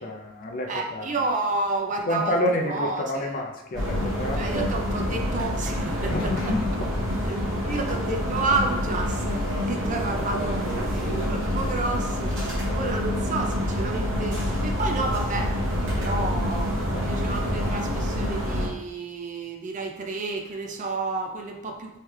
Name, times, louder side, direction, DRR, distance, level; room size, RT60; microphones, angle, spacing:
voice 1, 0.0-1.1 2.1-4.7 6.1-6.6 16.9-17.0, left 1 dB, 45° left, 2 dB, 0.5 m, -28 dB
voice 2, 0.7-3.4 4.3-6.6 7.2-7.4 7.7-15.6 16.0-22.0, right 3 dB, 35° right, 2 dB, 0.5 m, -30 dB
sound 1, 3.7-18.7, equal, 65° right, 1.2 m, -27 dB
3.2 x 3.2 x 3.2 m, 0.86 s
head